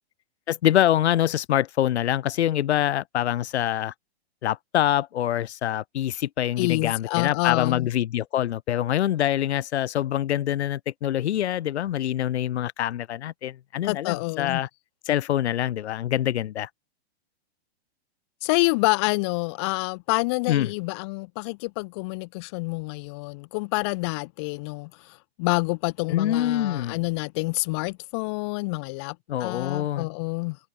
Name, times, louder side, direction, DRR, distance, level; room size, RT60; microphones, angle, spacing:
voice 1, 0.5-3.9 4.4-14.7 15.1-16.7 20.5-20.7 26.1-27.0 29.3-30.1, left 12 dB, 90° left, 0.8 m, -25 dB
voice 2, 6.6-7.9 13.8-14.6 18.4-30.6, left 28 dB, 25° left, 1.7 m, -27 dB
hypercardioid pair, 180°, 32 cm